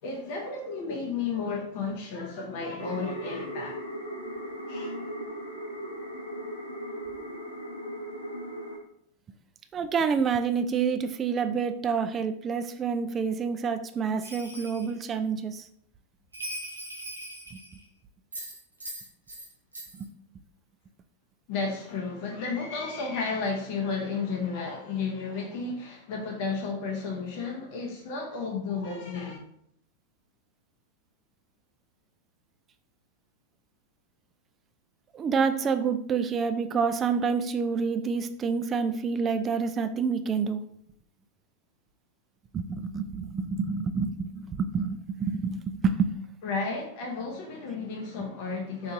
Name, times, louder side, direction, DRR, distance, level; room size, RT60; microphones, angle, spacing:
voice 1, 0.0-3.8 4.7-5.1 21.5-29.4 46.4-48.9, left 4 dB, 45° left, 0.6 m, -33 dB
sound 1, 2.8-8.8, equal, 75° left, 0.9 m, -37 dB
voice 2, 9.7-15.7 17.5-17.6 20.0-20.1 35.1-40.6 42.5-46.1, right 5 dB, 25° right, 0.3 m, -28 dB
Bell, 14.2-14.9 16.3-17.8 18.3-19.5 19.7-20.0, right 1 dB, 85° right, 1.0 m, -40 dB
4.4 x 2.8 x 2.6 m
figure-of-eight pair, 90°, 0 cm